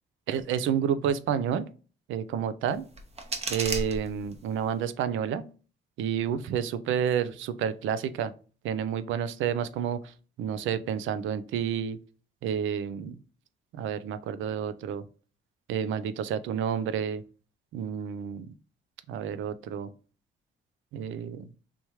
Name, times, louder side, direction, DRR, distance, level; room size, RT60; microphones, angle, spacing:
voice 1, 0.3-1.7 2.1-2.9 3.5-5.5 6.0-8.3 8.6-12.0 12.4-13.2 13.7-15.0 15.7-17.2 17.7-18.5 19.1-19.9 20.9-21.5, right 8 dB, 75° right, 13 dB, 0.4 m, -30 dB
sound 1, 2.7-4.7, right 2 dB, 30° right, 0.8 m, -35 dB
3.5 x 3.0 x 2.9 m, 0.37 s
cardioid pair, 90°, 20 cm